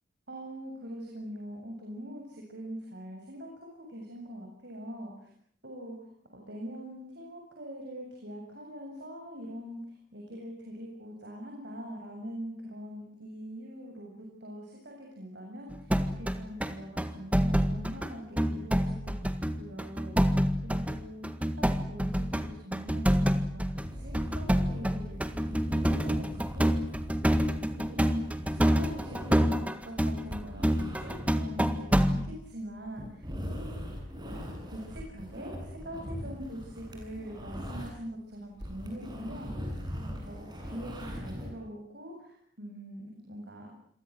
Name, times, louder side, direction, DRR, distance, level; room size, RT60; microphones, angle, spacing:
voice 1, 0.3-5.3 5.6-9.8 10.1-20.4 20.6-21.3 21.6-25.6 25.9-27.0 27.3-33.7 34.2-34.4 34.7-43.7, equal, 65° right, 0 dB, 7.7 m, -43 dB
sound 1, 15.7-18.1 18.4-32.3, equal, 10° right, 1.8 m, -27 dB
sound 2, 23.8-38.1 38.4-41.5, equal, 25° right, 7.9 m, -41 dB
28.5 x 23.5 x 7.9 m, 0.64 s
head